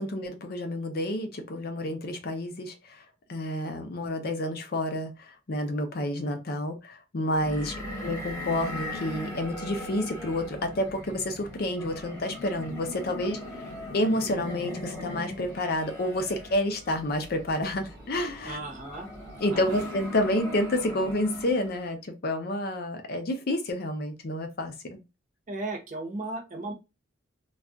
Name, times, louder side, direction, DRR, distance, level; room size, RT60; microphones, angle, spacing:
voice 1, 0.0-3.0 3.3-7.7 8.0-13.4 13.9-18.6 19.4-25.0, left 1 dB, 55° left, 5 dB, 0.5 m, -29 dB
sound 1, 7.3-21.9, left 1 dB, 15° left, 1.0 m, -39 dB
voice 2, 7.4-7.7 18.4-19.1 19.5-19.8 25.5-26.7, right 2 dB, 45° right, 3 dB, 0.8 m, -36 dB
2.4 x 2.2 x 3.6 m, 0.26 s
head